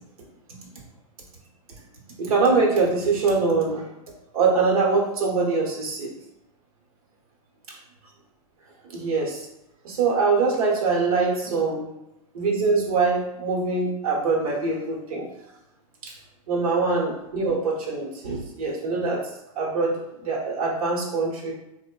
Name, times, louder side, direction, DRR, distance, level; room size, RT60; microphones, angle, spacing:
voice 1, 2.2-3.9 4.3-6.1 7.7-7.8 8.9-9.5 9.8-11.9 12.3-15.3 16.0-16.1 16.5-21.5, right 4 dB, 75° right, -2 dB, 0.8 m, -23 dB
2.9 x 2.0 x 2.2 m, 0.90 s
supercardioid pair, 160°, 18 cm